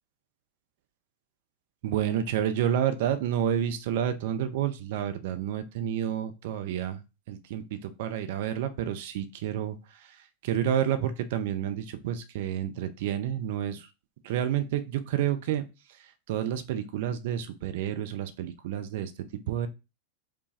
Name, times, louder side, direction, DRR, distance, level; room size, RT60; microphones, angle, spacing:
voice 1, 1.8-13.9 14.2-19.7, right 10 dB, 50° right, 9 dB, 0.6 m, -30 dB
4.8 x 2.3 x 3.3 m, 0.27 s
figure-of-eight pair, 90°, 0 cm